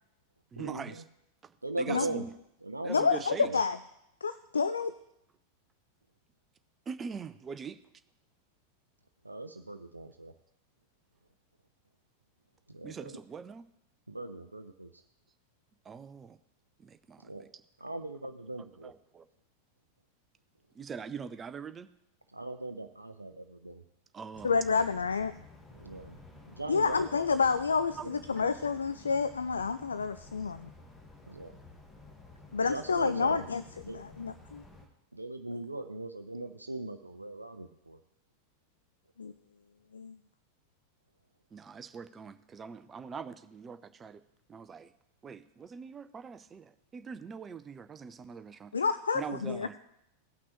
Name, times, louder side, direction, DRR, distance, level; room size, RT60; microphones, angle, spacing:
voice 1, 0.5-1.0 1.4-2.3 2.8-3.5 6.9-7.8 12.8-13.7 15.8-16.4 16.8-17.6 18.8-19.3 20.7-21.9 24.1-24.5 28.0-28.1 41.5-44.2 44.5-44.9 45.2-48.7 49.1-49.8, right 6 dB, 20° right, 11 dB, 0.5 m, -42 dB
voice 2, 1.6-2.2 2.6-3.1 3.4-3.5 9.2-10.3 12.7-12.9 14.1-14.9 17.2-17.5 17.8-18.9 22.3-23.8 25.8-26.2 26.4-27.0 28.4-28.5 31.3-31.5 32.7-33.5 33.9-34.0 35.1-38.0, right 2 dB, 85° right, 7 dB, 0.4 m, -39 dB
voice 3, 2.9-3.8 4.2-4.9 24.4-25.3 26.7-30.7 32.5-34.6 39.2-39.3 39.9-40.2 48.7-49.7, left 5 dB, 75° left, 13 dB, 0.3 m, -29 dB
sound 1, 24.3-34.9, left 2 dB, 15° left, 1.7 m, -53 dB
17.5 x 5.9 x 3.1 m, 0.82 s
figure-of-eight pair, 90°, 0 cm